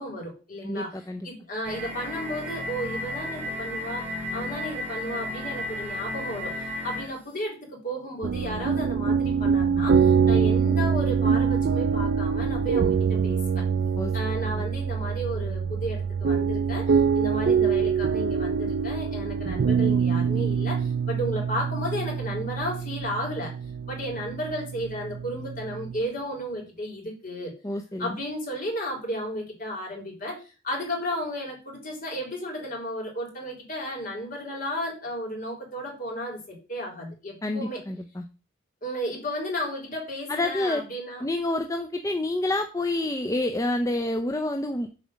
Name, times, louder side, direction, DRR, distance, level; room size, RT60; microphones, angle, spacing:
voice 1, 0.0-1.0 1.2-13.7 14.1-23.5 23.9-27.5 28.0-37.8 38.8-41.2, equal, 45° left, 0 dB, 3.2 m, -33 dB
voice 2, 0.6-1.3 14.0-14.1 27.6-28.2 37.4-38.2 40.3-40.8 41.2-44.9, left 1 dB, 15° left, 5 dB, 0.5 m, -28 dB
sound 1, 1.6-7.2, left 1 dB, 10° right, 2.1 m, -33 dB
sound 2, 8.2-26.0, right 6 dB, 55° right, 0.4 m, -25 dB
7.2 x 4.2 x 6.3 m, 0.33 s
head